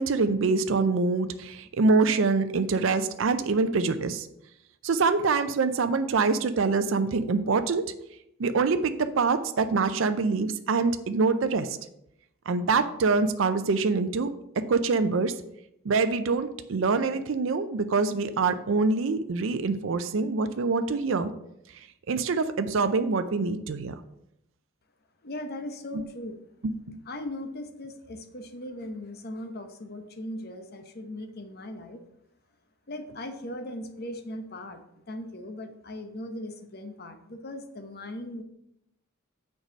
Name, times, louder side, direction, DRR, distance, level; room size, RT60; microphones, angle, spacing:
voice 1, 0.0-4.3 4.8-7.9 8.4-11.8 12.5-14.3 14.7-15.3 15.8-21.3 22.1-23.9 25.9-26.0 26.9-27.0, right 4 dB, 65° right, 10 dB, 0.5 m, -25 dB
voice 2, 25.2-26.4 27.0-32.0 32.9-38.4, left 1 dB, 50° left, 7 dB, 0.9 m, -38 dB
6.5 x 4.7 x 6.3 m, 0.81 s
head